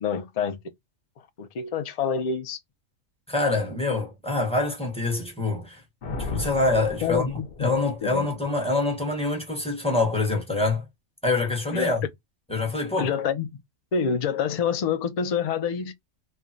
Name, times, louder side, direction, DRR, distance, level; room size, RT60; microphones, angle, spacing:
voice 1, 0.0-0.7 1.4-2.6 7.0-7.7 8.0-8.3 11.7-11.9 12.9-13.6 13.9-15.9, left 6 dB, 75° left, 0.3 m, -27 dB
voice 2, 3.3-5.8 6.2-7.3 7.6-10.8 11.2-12.0 12.5-13.1, left 2 dB, 5° left, 0.8 m, -25 dB
Thunder, 6.0-8.2, left 2 dB, 50° left, 0.9 m, -35 dB
3.2 x 2.1 x 2.6 m
omnidirectional pair, 1.3 m